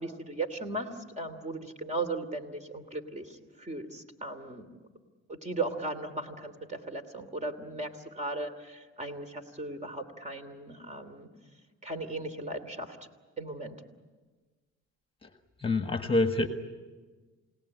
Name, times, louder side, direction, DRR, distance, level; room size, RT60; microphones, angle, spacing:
voice 1, 0.0-4.8 5.3-11.3 11.8-13.1 13.4-13.8, right 2 dB, 25° right, 7 dB, 2.9 m, -37 dB
voice 2, 15.6-16.5, left 2 dB, 20° left, 7 dB, 1.7 m, -26 dB
28.5 x 18.5 x 9.7 m, 1.4 s
cardioid pair, 90°, 30 cm